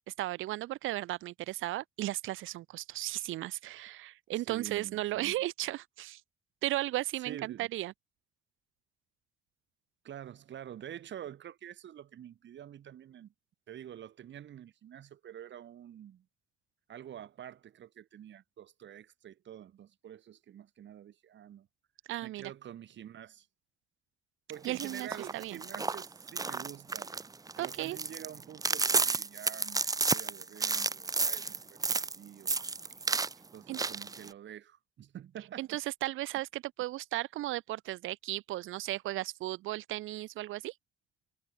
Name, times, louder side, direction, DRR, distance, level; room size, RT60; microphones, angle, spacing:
voice 1, 0.0-6.2 6.6-7.9 22.1-22.5 24.6-25.1 25.3-25.6 27.6-28.0 33.7-33.8 35.6-40.7, right 16 dB, 85° right, 1.0 m, -35 dB
voice 2, 4.4-5.4 7.2-7.7 10.0-13.3 13.7-16.3 16.9-21.7 22.2-23.5 24.5-27.1 27.6-31.8 32.2-32.6 33.5-35.8, right 10 dB, 65° right, 5.0 m, -47 dB
sound 1, 24.6-32.2 32.5-33.3 33.7-34.3, right 4 dB, 20° right, 0.5 m, -32 dB
cardioid pair, 90°, 20 cm